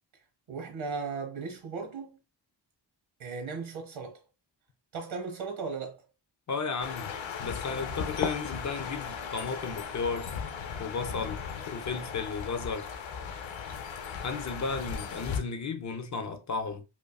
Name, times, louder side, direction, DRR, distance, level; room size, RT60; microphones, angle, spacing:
voice 1, 0.5-2.2 3.2-4.2 4.9-6.0, right 4 dB, 90° right, 1.3 m, -37 dB
voice 2, 6.5-7.1 7.4-10.3 10.8-11.4 11.7-12.9 14.2-16.8, left 4 dB, 40° left, 0.4 m, -34 dB
sound 1, 6.8-15.4, left 6 dB, 75° left, 0.7 m, -37 dB
5.2 x 2.2 x 2.3 m
wide cardioid pair, 165°, 46 cm